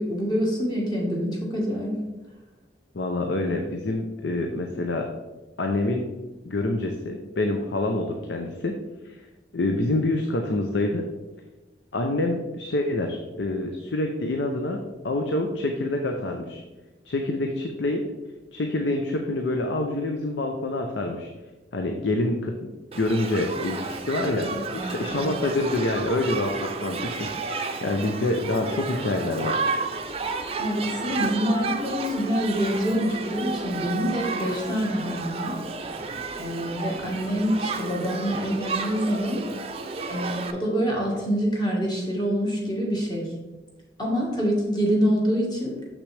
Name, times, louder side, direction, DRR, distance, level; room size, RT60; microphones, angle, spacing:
voice 1, 0.0-2.0 24.5-25.3 30.6-35.6 36.3-39.4 40.1-43.3 44.0-45.9, equal, 25° left, -2 dB, 1.5 m, -26 dB
voice 2, 2.9-5.0 5.6-6.0 6.5-8.7 9.0-9.2 9.5-11.0 11.9-16.6 17.0-18.0 18.5-21.3 21.7-22.5 22.9-29.6, left 2 dB, 85° left, 3 dB, 0.6 m, -26 dB
Shout / Human group actions, 22.9-40.5, right 4 dB, 35° right, 0.5 m, -32 dB
6.6 x 6.0 x 3.3 m, 1.2 s
head